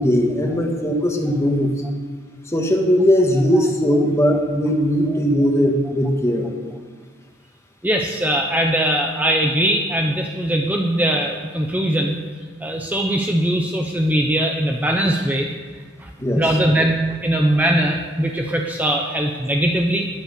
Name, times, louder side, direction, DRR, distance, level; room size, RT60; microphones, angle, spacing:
voice 1, 0.0-1.7 2.5-6.5 16.2-16.4, equal, 15° left, 2 dB, 1.8 m, -19 dB
voice 2, 3.5-4.0 5.1-5.2 7.8-12.2 12.6-15.5 16.0-16.1 16.3-20.1, right 1 dB, 10° right, 1 dB, 0.9 m, -21 dB
20.0 x 7.9 x 6.7 m, 1.5 s
head